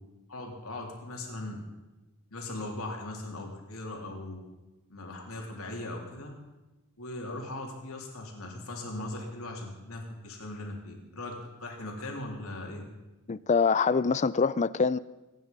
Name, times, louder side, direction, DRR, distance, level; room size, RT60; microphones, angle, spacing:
voice 1, 0.3-1.6 2.3-4.4 4.9-6.3 7.0-11.3 11.6-12.8, left 2 dB, 80° left, 3.4 m, -39 dB
voice 2, 13.3-15.0, left 5 dB, 35° left, 0.4 m, -24 dB
24.0 x 9.7 x 5.4 m
head